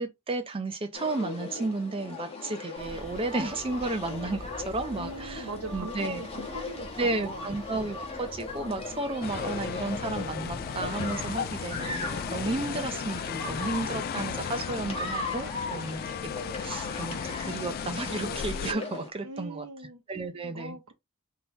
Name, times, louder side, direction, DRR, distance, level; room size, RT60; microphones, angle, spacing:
voice 1, 0.0-6.2 7.0-16.3 16.6-19.7 20.1-20.8, right 2 dB, 25° right, 0.5 m, -33 dB
sound 1, 0.9-19.1, left 3 dB, 25° left, 1.0 m, -38 dB
sound 2, 2.8-12.6, equal, ahead, 1.0 m, -46 dB
voice 2, 4.9-7.5 19.2-20.0 20.5-20.9, right 3 dB, 70° right, 0.8 m, -41 dB
sound 3, 9.2-18.7, left 7 dB, 45° left, 0.3 m, -35 dB
3.7 x 2.8 x 3.9 m
head